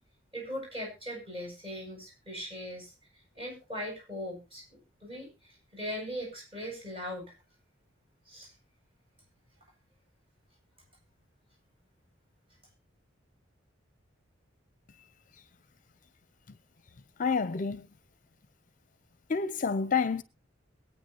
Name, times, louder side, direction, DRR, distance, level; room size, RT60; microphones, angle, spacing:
voice 1, 0.3-2.9 3.3-5.3 5.7-7.2 8.3-8.5, equal, 30° right, 7.9 m, -39 dB
voice 2, 17.2-17.9 19.3-20.2, left 5 dB, 40° left, 0.6 m, -28 dB
22.5 x 9.0 x 2.8 m
head